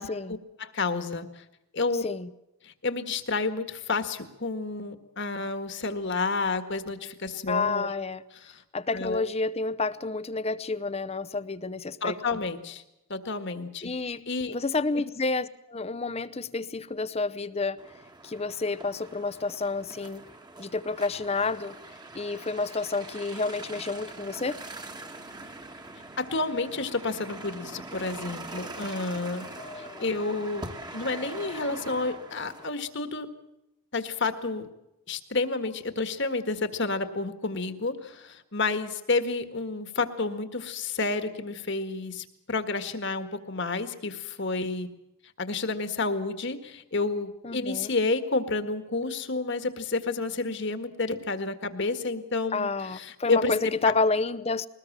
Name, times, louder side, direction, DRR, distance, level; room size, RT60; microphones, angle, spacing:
voice 1, 0.0-1.4 1.7-2.0 2.6-7.9 8.3-8.6 8.9-9.2 12.0-12.8 13.1-13.9 14.3-14.6 26.2-29.5 29.8-33.3 33.9-34.7 35.1-44.9 45.4-53.5 53.8-53.9, left 3 dB, 55° left, 9 dB, 1.8 m, -30 dB
voice 2, 7.5-8.2 8.7-12.2 13.8-17.8 18.2-20.2 20.6-21.7 22.1-24.6 29.6-30.1 47.4-47.9 52.5-54.7, left 3 dB, 30° left, 16 dB, 0.7 m, -30 dB
sound 1, 17.8-32.7, right 2 dB, 20° right, 1.5 m, -43 dB
22.0 x 19.5 x 7.4 m, 0.89 s
head